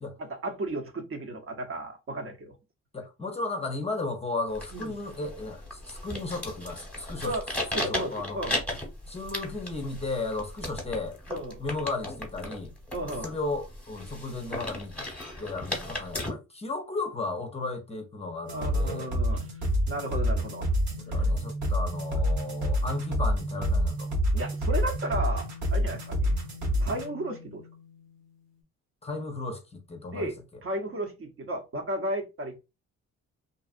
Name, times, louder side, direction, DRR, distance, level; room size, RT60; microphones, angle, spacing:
voice 1, 0.2-2.6 4.7-5.0 7.2-7.4 7.7-8.6 10.6-10.7 11.3-11.6 12.9-13.4 18.5-19.5 19.9-20.7 21.1-21.3 24.3-26.3 26.8-27.6 30.1-30.3 30.6-32.5, right 1 dB, 45° right, 0.8 m, -34 dB
voice 2, 2.9-7.3 7.8-8.4 9.1-11.2 11.6-12.7 13.2-14.9 15.4-19.1 21.1-24.1 29.0-30.3, left 3 dB, 20° left, 0.6 m, -34 dB
sound 1, 4.5-16.3, left 1 dB, 5° left, 1.1 m, -36 dB
sound 2, 18.5-28.4, equal, 70° right, 1.3 m, -28 dB
2.6 x 2.3 x 2.4 m
cardioid pair, 90°, 30 cm